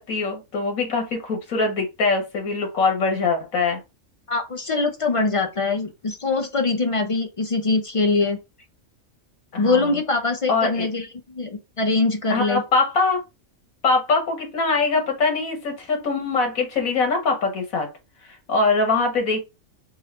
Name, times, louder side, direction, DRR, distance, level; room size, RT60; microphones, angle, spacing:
voice 1, 0.0-3.8 9.5-9.9 10.5-10.9 12.3-13.2 13.8-17.9 18.5-19.4, left 3 dB, 85° left, 1.7 m, -22 dB
voice 2, 4.3-8.4 9.6-12.6, left 3 dB, 50° left, 0.3 m, -23 dB
3.9 x 2.7 x 4.1 m
omnidirectional pair, 1.4 m